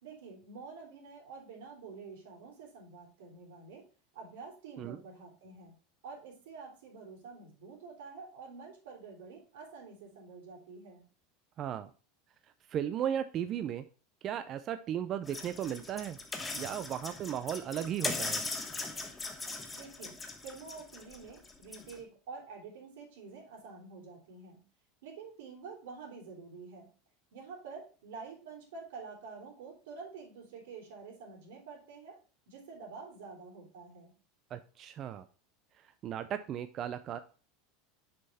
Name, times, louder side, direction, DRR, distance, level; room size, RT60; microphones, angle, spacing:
voice 1, 0.0-3.9 4.1-5.8 6.0-11.0 19.7-20.2 20.4-24.6 25.0-26.9 27.3-32.2 32.5-34.1, right 4 dB, 85° right, 0 dB, 3.5 m, -48 dB
voice 2, 11.6-11.9 12.7-13.8 14.2-16.2 16.5-18.4 34.5-35.3 35.8-37.2, right 10 dB, 35° right, 11 dB, 0.4 m, -36 dB
sound 1, 15.2-22.0, left 3 dB, 10° left, 1.0 m, -39 dB
6.6 x 5.6 x 4.1 m, 0.36 s
supercardioid pair, 155°, 0 cm